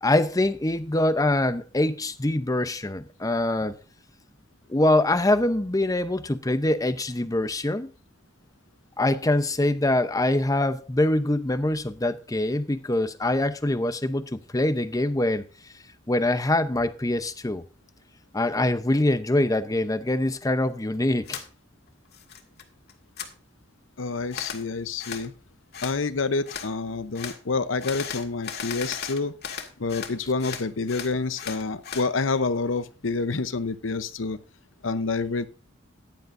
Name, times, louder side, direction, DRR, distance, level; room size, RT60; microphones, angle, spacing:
voice 1, 0.0-3.8 4.7-7.9 9.0-15.4 16.1-17.6 18.3-21.4, left 1 dB, 20° left, 0.7 m, -24 dB
sound 1, 21.3-21.5 21.9-22.6 22.9-23.3 24.3-24.6 25.0-25.3 25.7-26.0 26.5-26.7 27.2-27.4 27.8-30.1 30.4-32.1, left 7 dB, 55° left, 1.9 m, -36 dB
voice 2, 24.0-25.3 25.8-29.3 29.8-34.4 34.8-35.5, left 4 dB, 85° left, 0.8 m, -28 dB
15.0 x 10.5 x 2.6 m
head